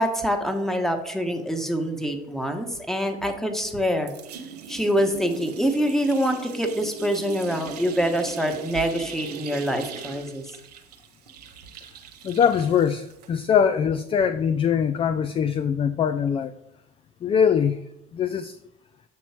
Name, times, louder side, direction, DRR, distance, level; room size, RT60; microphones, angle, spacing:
voice 1, 0.0-4.1 4.7-10.4, equal, ahead, 5 dB, 1.2 m, -25 dB
sound 1, 3.2-3.8 4.1-13.4, right 7 dB, 85° right, 0.7 m, -40 dB
voice 2, 12.2-16.5 17.2-17.8 18.1-18.6, left 7 dB, 30° left, 12 dB, 0.4 m, -22 dB
7.0 x 3.1 x 5.7 m, 0.85 s
hypercardioid pair, 70°, 20 cm